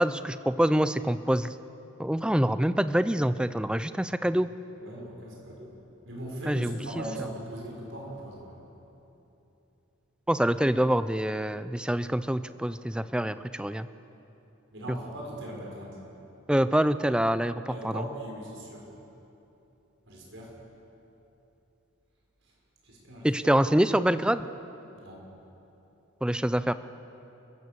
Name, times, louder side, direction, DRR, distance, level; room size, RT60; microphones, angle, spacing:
voice 1, 0.0-1.5 2.0-4.5 6.5-6.9 10.3-13.9 14.9-15.0 16.5-17.9 23.2-24.5 26.2-26.7, right 1 dB, 5° right, 13 dB, 0.4 m, -25 dB
voice 2, 4.8-5.7 6.0-8.6 14.7-16.0 17.7-18.8 20.1-20.6 22.8-23.3 25.0-25.3, right 1 dB, 60° right, -2 dB, 5.7 m, -39 dB
28.0 x 16.0 x 6.9 m, 3.0 s
head